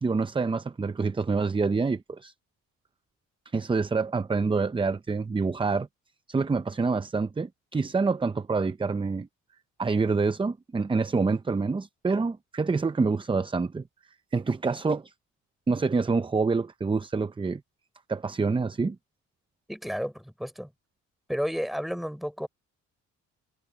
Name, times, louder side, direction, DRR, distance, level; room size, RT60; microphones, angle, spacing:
voice 1, 0.0-2.3 3.5-5.9 6.3-9.3 9.8-13.8 14.3-15.1 15.7-17.6 18.1-19.0, right 4 dB, 15° right, 0.6 m, -27 dB
voice 2, 19.7-20.7 21.3-22.5, equal, ahead, 3.8 m, -32 dB
cardioid pair, 90°, 30 cm